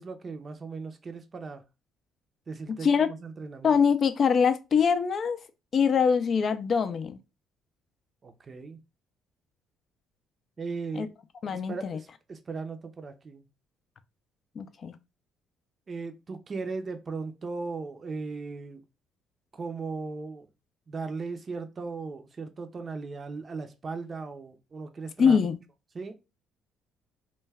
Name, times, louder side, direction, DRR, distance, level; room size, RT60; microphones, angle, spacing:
voice 1, 0.0-1.6 2.5-3.8 8.2-8.8 10.6-11.1 11.5-13.5 15.9-18.8 19.5-20.5 20.9-25.4 25.9-26.1, right 4 dB, 35° right, 0.5 m, -37 dB
voice 2, 2.7-3.1 3.6-5.4 5.7-7.2 10.9-11.1 11.4-12.0 14.6-14.9 25.2-25.6, left 6 dB, 45° left, 0.4 m, -23 dB
2.3 x 2.1 x 3.3 m
supercardioid pair, 80°, 0 cm